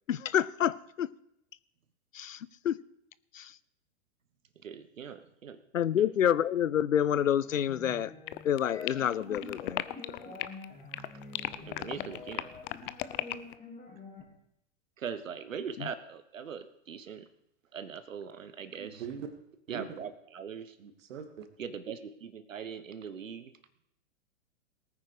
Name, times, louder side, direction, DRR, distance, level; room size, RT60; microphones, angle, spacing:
voice 1, 0.1-1.1 2.1-2.8 3.3-3.5 5.7-8.1 8.4-9.8 15.8-15.9, left 10 dB, 90° left, 0.7 m, -28 dB
voice 2, 4.6-5.6 6.0-6.1 11.6-12.5 15.0-17.2 17.7-19.0 19.7-20.7 21.6-23.5, right 7 dB, 85° right, 1.3 m, -41 dB
sound 1, 7.1-14.2, left 3 dB, 20° left, 3.6 m, -47 dB
sound 2, 8.3-10.6 10.9-13.5, left 16 dB, 45° left, 0.7 m, -36 dB
voice 3, 18.8-19.3 19.7-20.0 20.8-21.5, right 7 dB, 65° right, 2.4 m, -41 dB
19.0 x 9.3 x 5.0 m
hypercardioid pair, 115°, 38 cm